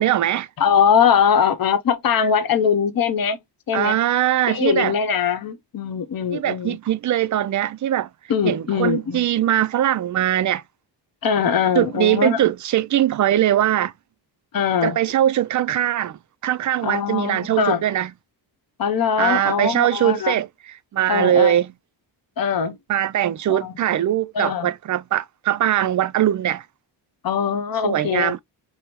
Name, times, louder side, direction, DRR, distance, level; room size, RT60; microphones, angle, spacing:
voice 1, 0.0-0.5 3.7-5.0 6.3-8.1 8.4-10.6 11.8-13.9 14.8-18.1 19.2-21.7 22.9-26.6 27.8-28.4, right 11 dB, 45° right, 0.4 m, -21 dB
voice 2, 0.6-3.4 3.7-4.0 4.5-6.8 8.3-9.2 11.2-12.4 14.5-15.0 16.8-17.8 18.8-20.4 21.1-21.5 22.4-22.8 23.5-23.7 24.3-24.7 27.2-28.4, left 7 dB, 50° left, 0.9 m, -21 dB
5.1 x 2.1 x 2.9 m
cardioid pair, 80°, 45 cm